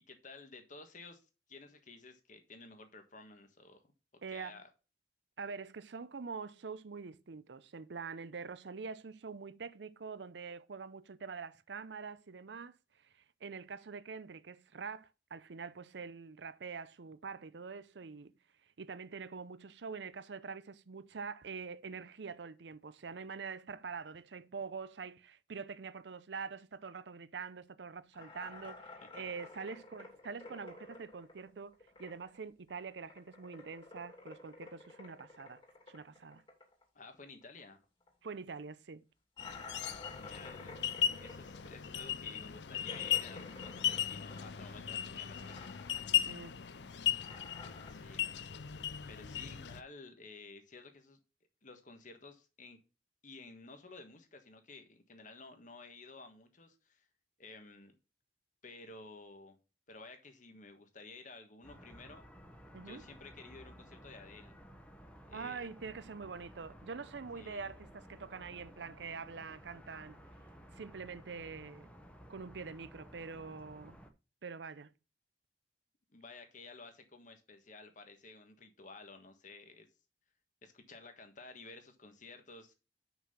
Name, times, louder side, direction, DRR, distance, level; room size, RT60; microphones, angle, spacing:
voice 1, 0.1-1.2 1.5-3.8 4.3-4.7 36.9-37.8 39.9-40.8 41.1-45.6 47.9-48.4 49.1-51.2 51.6-52.8 53.2-57.1 57.4-57.9 58.6-59.6 59.9-62.2 62.8-64.6 65.3-65.7 67.4-67.8 76.1-79.9 80.6-82.7, left 3 dB, 45° left, 1.5 m, -53 dB
voice 2, 4.2-4.6 5.4-12.8 13.4-18.3 18.8-35.6 35.9-36.4 38.2-39.0 46.3-46.6 62.7-63.0 65.3-70.2 70.7-71.9 72.3-74.0 74.4-74.9, right 5 dB, 80° right, 0.6 m, -45 dB
sound 1, 28.1-32.4 32.7-37.7 38.0-38.1 38.5-38.6 39.4-44.9 45.2-46.2 46.4-47.9, left 3 dB, 30° left, 2.8 m, -52 dB
sound 2, 39.4-49.8, left 10 dB, 75° left, 0.6 m, -37 dB
sound 3, 61.6-74.1, equal, 5° left, 1.0 m, -55 dB
6.1 x 5.6 x 5.7 m
head